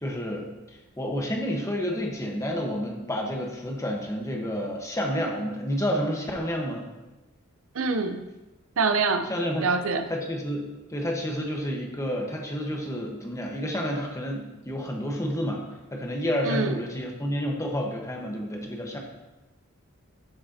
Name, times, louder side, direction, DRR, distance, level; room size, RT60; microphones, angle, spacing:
voice 1, 0.0-6.8 9.2-9.7 10.1-15.6 15.9-19.0, equal, 15° left, 0 dB, 1.2 m, -30 dB
voice 2, 7.8-8.2 8.8-9.3 9.6-10.0 16.5-16.7, right 4 dB, 75° right, 8 dB, 0.6 m, -24 dB
13.0 x 6.4 x 2.8 m, 1.1 s
head